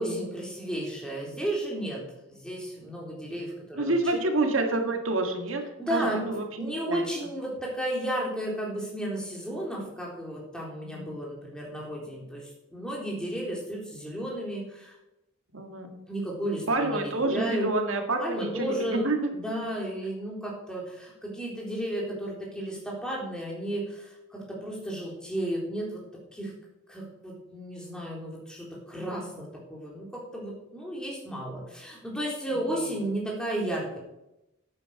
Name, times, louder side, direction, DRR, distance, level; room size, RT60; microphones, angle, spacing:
voice 1, 0.0-2.0 2.3-4.2 5.8-6.2 6.6-14.9 16.1-17.7 18.2-26.0 26.3-26.5 26.9-34.0, right 1 dB, 5° left, -3 dB, 3.7 m, -33 dB
voice 2, 3.7-5.6 5.9-7.1 10.8-11.1 15.5-16.0 16.7-19.2 32.7-32.8, right 2 dB, 80° right, 4 dB, 1.9 m, -28 dB
10.5 x 9.0 x 5.9 m, 0.90 s
head